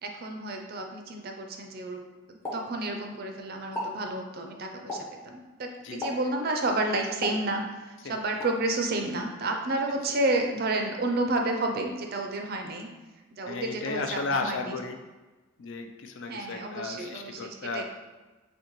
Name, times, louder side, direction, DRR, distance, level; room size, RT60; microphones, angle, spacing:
voice 1, 0.0-2.0 2.3-12.9 13.3-14.8 16.3-17.8, right 2 dB, 45° right, 3 dB, 0.4 m, -31 dB
Explosion, 2.4-3.3 3.6-4.0 4.9-5.3 6.0-6.4 7.2-7.9 8.4-8.6, left 1 dB, 15° left, 0.8 m, -36 dB
voice 2, 13.4-15.0 15.6-17.8, left 3 dB, 60° left, 5 dB, 0.4 m, -34 dB
6.3 x 2.2 x 3.0 m, 1.2 s
head